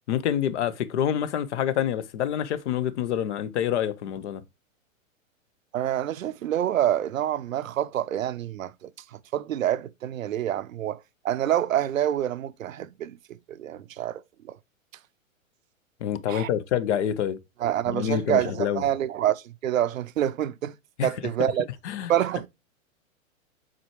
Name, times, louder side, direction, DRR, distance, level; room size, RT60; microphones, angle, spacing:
voice 1, 0.1-4.4 16.0-17.4 17.9-18.8 21.0-21.1 21.8-22.1, left 10 dB, 55° left, 0.9 m, -27 dB
voice 2, 5.7-14.2 14.5-14.6 16.3-16.5 17.6-20.8 21.0-21.7 22.1-22.5, right 11 dB, 75° right, 0.7 m, -27 dB
7.5 x 4.7 x 3.0 m
hypercardioid pair, 110°, 41 cm